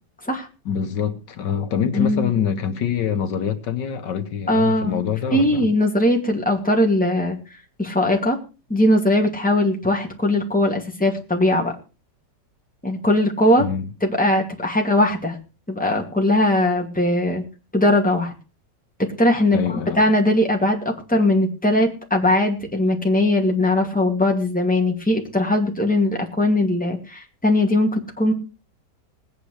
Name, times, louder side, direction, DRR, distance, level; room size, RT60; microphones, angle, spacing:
voice 1, 0.7-5.7 13.6-13.9 19.5-20.0, left 8 dB, 75° left, 1.8 m, -25 dB
voice 2, 1.9-2.3 4.5-5.0 5.3-7.4 7.8-8.4 8.7-11.7 12.8-13.7 14.0-15.4 15.7-17.4 17.7-18.3 19.0-28.3, left 1 dB, 5° left, 2.4 m, -20 dB
19.0 x 9.1 x 4.9 m
omnidirectional pair, 1.9 m